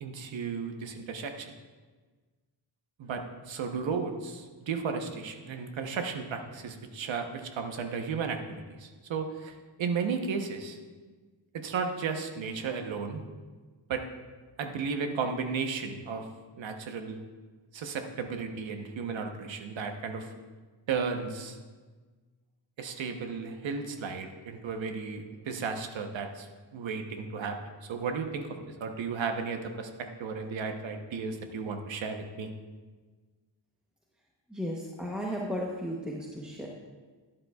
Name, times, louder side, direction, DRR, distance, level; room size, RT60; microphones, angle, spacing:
voice 1, 0.0-1.5 3.0-10.8 11.5-13.2 13.9-14.0 14.6-16.3 16.6-17.2 17.7-20.3 20.9-21.6 22.8-26.5 26.7-28.5 28.8-32.5, right 5 dB, 75° right, 5 dB, 1.0 m, -34 dB
voice 2, 34.5-36.7, equal, ahead, -3 dB, 0.9 m, -34 dB
12.0 x 11.0 x 2.3 m, 1.4 s
wide cardioid pair, 135°, 46 cm